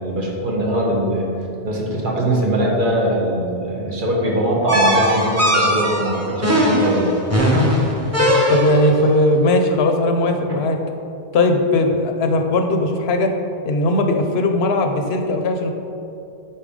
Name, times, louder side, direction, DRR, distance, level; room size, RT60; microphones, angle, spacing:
voice 1, 0.0-1.3 1.6-7.1, right 1 dB, 55° right, -2 dB, 1.2 m, -21 dB
sound 1, 4.7-9.0, equal, 15° right, 0.9 m, -18 dB
voice 2, 8.5-10.8 11.3-13.3 13.6-15.7, left 2 dB, 85° left, 5 dB, 0.9 m, -18 dB
8.6 x 4.2 x 3.7 m, 2.7 s
omnidirectional pair, 1.0 m